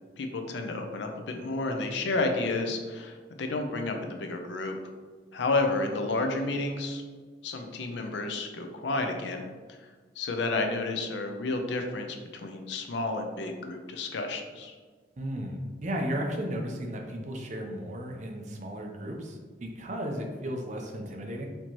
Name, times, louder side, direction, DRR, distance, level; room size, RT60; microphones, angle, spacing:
voice 1, 0.2-4.8 5.3-7.0 7.4-9.4 9.7-9.8 10.2-12.2 12.4-14.7, left 2 dB, 75° left, 4 dB, 0.5 m, -31 dB
voice 2, 15.2-21.4, equal, 40° right, 2 dB, 0.5 m, -34 dB
4.4 x 2.8 x 2.9 m, 1.5 s
head